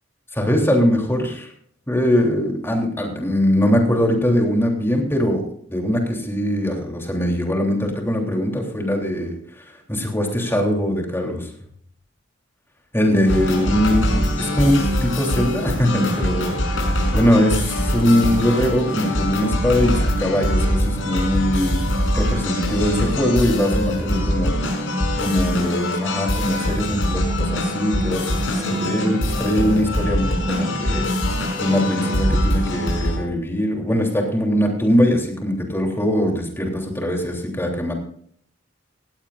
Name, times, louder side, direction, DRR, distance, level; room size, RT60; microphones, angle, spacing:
voice 1, 0.3-1.5 1.9-5.4 5.7-11.5 12.9-14.1 14.4-21.9 22.1-24.5 25.2-31.1 31.6-37.9, equal, 10° left, 1 dB, 3.3 m, -21 dB
sound 1, 13.2-33.2, equal, 80° left, 5.8 m, -23 dB
18.0 x 16.0 x 2.5 m, 0.62 s
head